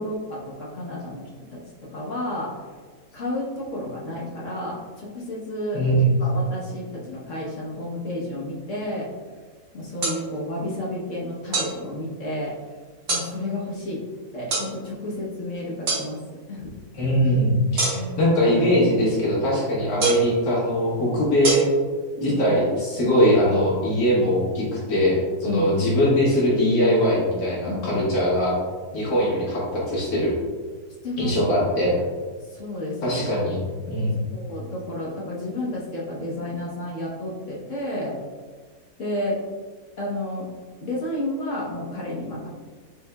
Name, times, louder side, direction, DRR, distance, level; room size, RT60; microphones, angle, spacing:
voice 1, 0.0-2.6 3.1-5.8 6.2-9.1 9.7-12.6 13.1-14.0 14.3-16.2 16.5-16.7 17.9-18.4 22.2-22.5 25.5-25.7 27.7-28.1 31.0-31.7 32.4-33.3 34.3-38.2 39.0-39.4 40.0-40.5 40.8-42.5, left 1 dB, 50° left, -5 dB, 1.2 m, -31 dB
voice 2, 5.7-6.1 17.0-21.7 22.2-28.6 28.9-30.3 31.2-32.0 33.0-33.6 33.9-34.3, equal, 75° left, -7 dB, 2.0 m, -21 dB
sound 1, 10.0-10.2 11.5-11.7 13.1-13.3 14.5-14.7 15.9-16.0 17.8-18.2 20.0-20.3 21.4-21.5, right 4 dB, 45° right, 1.0 m, -23 dB
5.3 x 3.4 x 2.2 m, 1.5 s
omnidirectional pair, 1.8 m